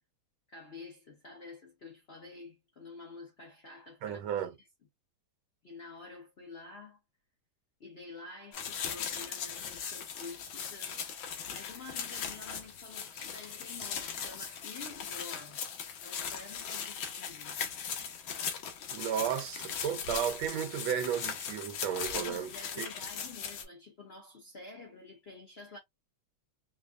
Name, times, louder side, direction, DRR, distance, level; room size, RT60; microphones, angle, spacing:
voice 1, 0.5-4.2 4.6-4.7 5.6-7.0 7.8-11.0 11.5-15.6 16.0-17.6 22.1-25.8, left 3 dB, 50° left, 0.8 m, -49 dB
voice 2, 4.0-4.5 18.9-22.5 22.8-22.9, right 9 dB, 90° right, 1.5 m, -33 dB
sound 1, 8.5-23.6, left 7 dB, 80° left, 1.6 m, -39 dB
5.3 x 2.0 x 2.3 m
omnidirectional pair, 2.2 m